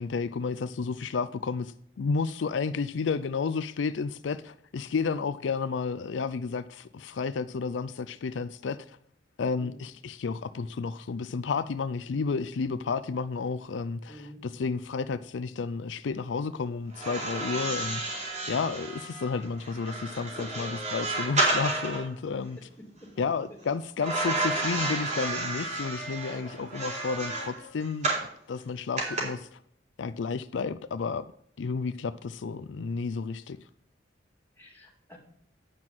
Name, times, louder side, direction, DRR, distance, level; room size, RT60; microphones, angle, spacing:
voice 1, 0.0-9.0 9.4-18.0 18.5-22.6 23.2-28.1 28.5-29.6 30.0-31.2 31.6-33.6, left 5 dB, 75° left, 0.4 m, -31 dB
voice 2, 14.1-14.5 22.6-23.1 34.6-35.2, equal, 10° left, 2.8 m, -49 dB
sound 1, 16.9-22.1 24.0-28.3 29.0-29.2, right 2 dB, 40° right, 4.0 m, -31 dB
9.5 x 6.0 x 7.5 m
head